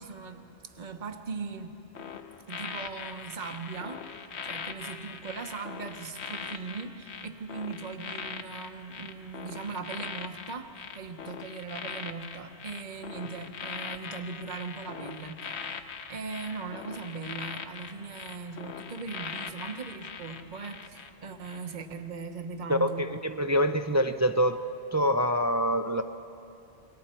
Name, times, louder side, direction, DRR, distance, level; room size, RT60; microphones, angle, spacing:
voice 1, 0.0-1.7 2.5-4.2 4.4-23.1, right 4 dB, 45° right, 7 dB, 1.1 m, -39 dB
sound 1, 1.9-21.1 21.4-21.7, left 6 dB, 80° left, 1.2 m, -41 dB
voice 2, 22.7-24.6 24.9-26.0, equal, 30° right, 8 dB, 0.3 m, -25 dB
29.0 x 22.5 x 4.4 m, 2.7 s
omnidirectional pair, 1.1 m